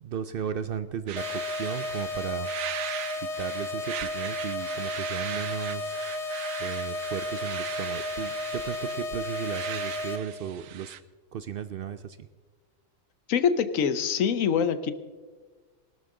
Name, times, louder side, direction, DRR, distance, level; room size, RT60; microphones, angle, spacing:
voice 1, 0.0-2.5 3.4-6.0 6.6-11.0 11.3-12.3, right 8 dB, 60° right, 12 dB, 0.6 m, -35 dB
sound 1, 1.1-11.0, right 12 dB, 85° right, 1.0 m, -39 dB
sound 2, 1.2-10.2, left 2 dB, 65° left, 1.2 m, -33 dB
voice 2, 13.3-14.9, left 7 dB, 85° left, 12 dB, 1.2 m, -24 dB
20.5 x 12.0 x 3.8 m, 1.4 s
omnidirectional pair, 1.3 m